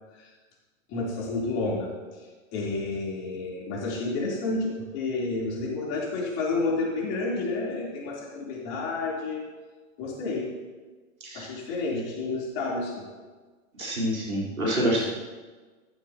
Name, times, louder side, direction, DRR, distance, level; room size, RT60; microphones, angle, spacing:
voice 1, 0.9-1.9 2.5-9.4 10.0-10.5 11.3-13.1, left 3 dB, 40° left, -3 dB, 3.9 m, -30 dB
voice 2, 13.7-15.0, equal, 85° right, -5 dB, 4.6 m, -27 dB
14.5 x 12.5 x 3.1 m, 1.3 s
figure-of-eight pair, 100°, 41 cm